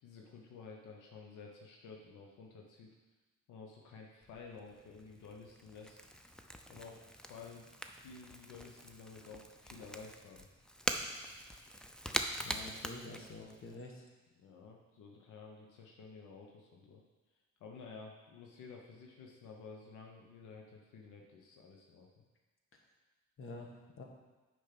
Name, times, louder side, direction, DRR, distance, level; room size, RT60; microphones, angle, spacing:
voice 1, 0.0-2.9 3.5-6.0 6.7-7.7 8.0-10.5 14.4-17.0 17.6-22.2, left 4 dB, 80° left, 0 dB, 1.0 m, -52 dB
Crackle / Crack, 4.2-13.7, equal, ahead, 0.5 m, -43 dB
voice 2, 12.4-14.0 23.4-23.7 24.0-24.1, left 2 dB, 45° left, 1 dB, 1.5 m, -47 dB
6.6 x 5.2 x 5.9 m, 1.2 s
cardioid pair, 90°, 30 cm